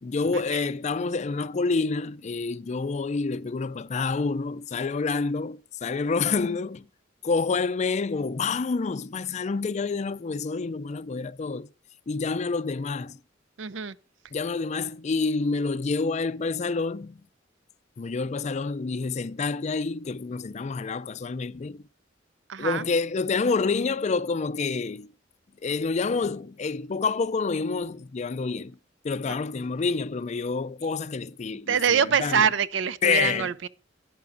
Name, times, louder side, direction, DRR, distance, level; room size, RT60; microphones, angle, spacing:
voice 1, 0.0-6.9 7.2-11.7 12.1-13.2 14.3-17.2 18.0-21.8 22.6-25.1 25.6-28.8 29.0-32.5 33.0-33.5, left 4 dB, 35° left, 0.4 m, -28 dB
voice 2, 13.6-14.0 22.5-22.8 31.7-33.7, right 7 dB, 70° right, 0.5 m, -24 dB
12.0 x 9.4 x 2.5 m
head